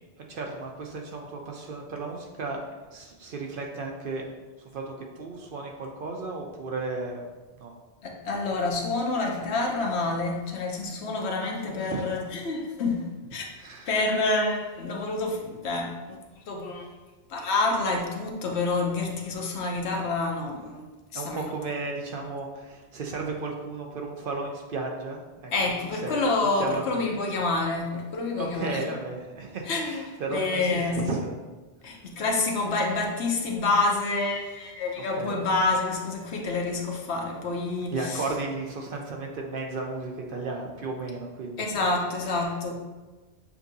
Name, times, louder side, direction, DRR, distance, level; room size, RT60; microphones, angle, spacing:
voice 1, 0.3-2.6 2.9-4.3 4.6-7.3 7.6-7.7 11.9-12.1 13.6-13.9 21.1-25.5 25.9-26.2 26.6-27.0 28.4-31.4 35.0-35.4 37.9-41.7 42.3-42.5, right 3 dB, 60° right, 1 dB, 0.7 m, -34 dB
voice 2, 8.0-13.5 13.9-16.2 16.5-16.9 17.3-20.8 21.1-21.5 25.5-28.8 29.7-31.0 31.8-38.2 41.6-42.8, left 3 dB, 70° left, 1 dB, 1.0 m, -28 dB
6.9 x 2.6 x 2.6 m, 1.2 s
omnidirectional pair, 1.2 m